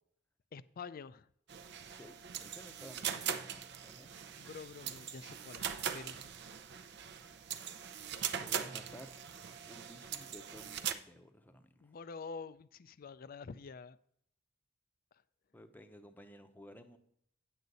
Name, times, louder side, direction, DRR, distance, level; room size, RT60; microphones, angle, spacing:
voice 1, 0.5-1.3 4.4-5.7 5.9-6.2 11.8-14.0, left 5 dB, 45° left, 0.4 m, -47 dB
sound 1, 1.5-10.9, right 8 dB, 60° right, 0.6 m, -41 dB
voice 2, 1.9-4.3 8.4-9.1 9.7-12.0 15.5-17.0, equal, 10° left, 0.8 m, -55 dB
9.7 x 8.0 x 4.0 m
head